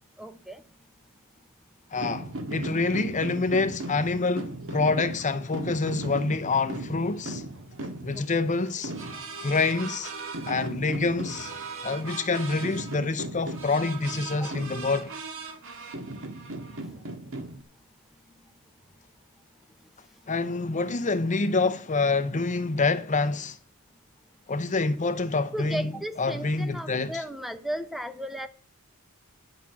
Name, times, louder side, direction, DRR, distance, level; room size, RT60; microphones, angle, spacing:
voice 1, 0.2-0.6 8.1-8.2 14.4-14.5 25.5-28.5, equal, ahead, 0.7 m, -35 dB
voice 2, 1.9-7.4 8.0-8.9 9.4-10.1 10.5-11.5 11.8-15.1 20.3-23.6 24.5-25.9 26.2-27.1, left 3 dB, 35° left, 0.8 m, -26 dB
sound 1, 1.9-17.6, right 2 dB, 65° right, 1.8 m, -37 dB
11.0 x 5.9 x 8.4 m
head